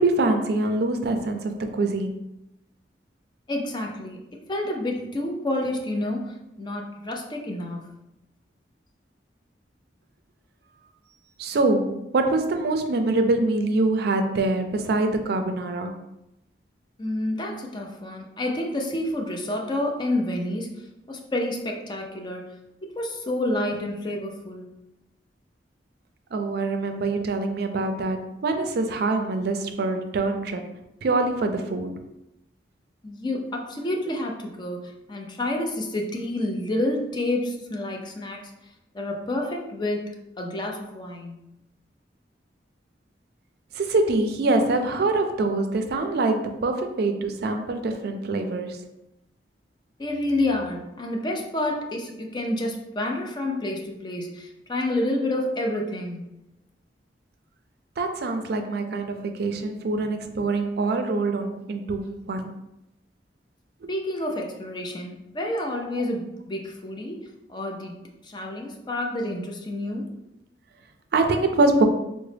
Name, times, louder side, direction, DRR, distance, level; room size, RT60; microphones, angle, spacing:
voice 1, 0.0-2.2 11.4-16.0 26.3-30.6 31.0-32.0 43.7-48.8 58.0-62.5 63.8-63.9 71.1-71.9, right 2 dB, 60° right, 6 dB, 0.4 m, -24 dB
voice 2, 3.5-4.2 4.5-8.0 17.0-22.4 23.0-24.7 33.0-38.5 38.9-41.5 50.0-56.4 63.9-67.2 67.5-68.0 68.2-70.1, left 1 dB, 25° left, 2 dB, 0.4 m, -29 dB
3.6 x 2.1 x 3.3 m, 0.88 s
head